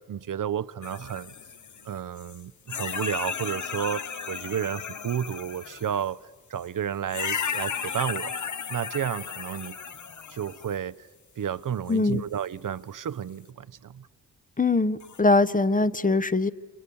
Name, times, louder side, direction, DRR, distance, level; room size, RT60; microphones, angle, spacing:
voice 1, 0.0-1.3 1.8-6.2 6.5-9.8 10.3-11.1 11.4-14.1, right 9 dB, 60° right, 0.7 m, -32 dB
sound 1, 0.8-2.4 2.7-6.1 7.1-10.8 11.9-12.0 15.0-15.2, left 7 dB, 50° left, 1.1 m, -35 dB
voice 2, 11.9-12.2 14.6-16.5, left 3 dB, 20° left, 0.8 m, -22 dB
29.0 x 25.5 x 7.0 m
cardioid pair, 65°, 36 cm